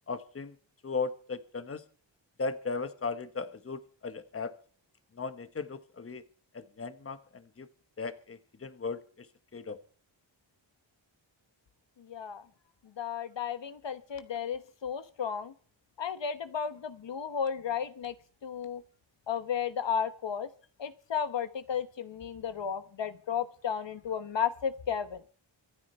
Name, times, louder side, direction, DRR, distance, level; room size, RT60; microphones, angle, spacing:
voice 1, 0.1-0.5 0.8-1.8 2.4-4.5 5.1-6.2 6.5-7.7 8.0-9.8, left 4 dB, 30° left, 12 dB, 1.2 m, -37 dB
voice 2, 12.0-12.4 13.0-15.5 16.0-18.1 18.4-18.8 19.3-20.5 20.8-25.2, left 7 dB, 65° left, 12 dB, 1.2 m, -33 dB
25.0 x 9.7 x 4.3 m, 0.44 s
wide cardioid pair, 130°, 47 cm